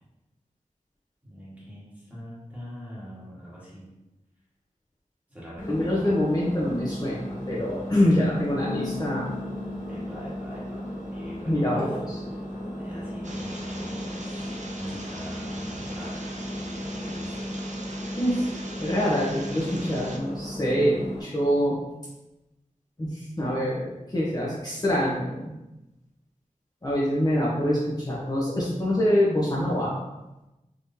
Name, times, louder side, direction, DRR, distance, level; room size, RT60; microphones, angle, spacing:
voice 1, 1.2-3.9 5.3-6.1 9.9-11.8 12.3-12.4 12.8-16.3 16.5-17.5 19.5-19.7, equal, 10° right, -8 dB, 1.5 m, -43 dB
Engine, 5.6-21.2, equal, 85° left, 1.3 m, -35 dB
voice 2, 5.7-9.3 11.5-12.2 18.2-18.5 18.8-21.8 23.0-25.5 26.8-29.9, equal, 30° left, -7 dB, 0.8 m, -25 dB
Bass guitar, 8.6-11.8, left 8 dB, 70° left, 0.4 m, -41 dB
sound 1, 13.2-20.2, right 2 dB, 60° right, 0.5 m, -42 dB
3.7 x 3.0 x 2.7 m, 0.99 s
wide cardioid pair, 65°, 14 cm